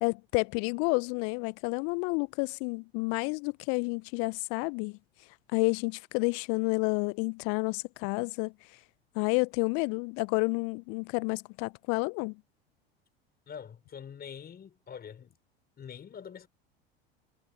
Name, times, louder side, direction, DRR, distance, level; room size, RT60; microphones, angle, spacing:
voice 1, 0.0-5.0 5.5-8.5 9.2-12.4, left 35 dB, 50° left, 0.4 m, -30 dB
voice 2, 13.5-15.4 15.8-16.5, left 7 dB, 30° left, 5.4 m, -45 dB
hypercardioid pair, 80°, 31 cm